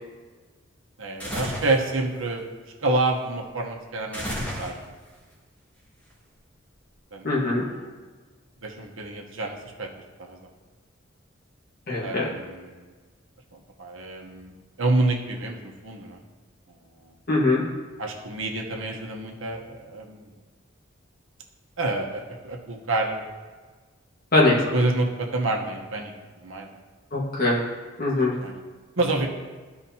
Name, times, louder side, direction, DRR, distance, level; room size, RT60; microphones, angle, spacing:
voice 1, 1.0-2.4 2.8-4.9 7.1-7.9 8.6-9.9 10.2-10.4 12.0-12.9 13.8-16.2 18.0-20.3 21.8-23.2 24.7-26.1 26.4-26.7 28.4-28.5 29.0-29.3, right 2 dB, 85° right, 1 dB, 1.1 m, -28 dB
sound 1, 1.2-1.8 4.1-5.1, equal, 10° left, 1.8 m, -32 dB
voice 2, 7.2-7.6 11.9-12.3 17.3-17.6 24.3-24.5 27.1-27.6 28.0-28.3, left 2 dB, 45° left, -4 dB, 1.7 m, -21 dB
13.5 x 4.9 x 2.8 m, 1.4 s
head